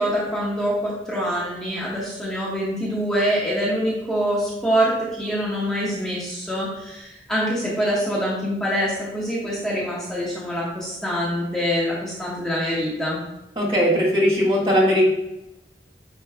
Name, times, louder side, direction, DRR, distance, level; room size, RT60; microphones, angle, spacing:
voice 1, 0.0-13.2, equal, 5° left, -8 dB, 1.4 m, -25 dB
voice 2, 13.5-15.0, equal, 30° right, -5 dB, 1.7 m, -19 dB
9.1 x 4.4 x 2.3 m, 0.91 s
head